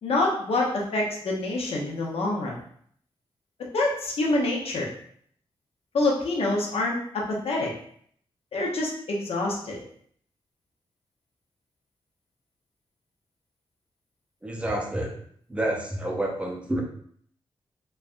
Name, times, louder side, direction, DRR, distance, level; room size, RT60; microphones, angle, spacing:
voice 1, 0.0-2.6 3.7-4.9 5.9-7.0 7.3-7.7 8.5-9.8, left 2 dB, 70° left, -2 dB, 0.7 m, -26 dB
voice 2, 14.4-15.2 15.5-16.8, right 1 dB, 10° right, -1 dB, 0.5 m, -29 dB
3.2 x 2.2 x 2.4 m, 0.62 s
wide cardioid pair, 150°, 10 cm